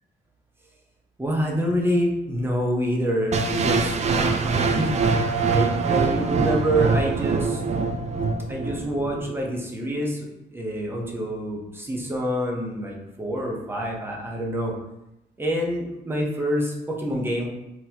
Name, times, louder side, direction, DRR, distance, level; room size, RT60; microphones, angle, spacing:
voice 1, 1.2-5.0 5.5-7.6 8.5-14.7 15.4-17.5, equal, 10° right, -2 dB, 0.8 m, -26 dB
sound 1, 3.3-9.3, right 4 dB, 35° right, 0.4 m, -24 dB
3.7 x 2.9 x 2.9 m, 0.91 s
cardioid pair, 90°, 20 cm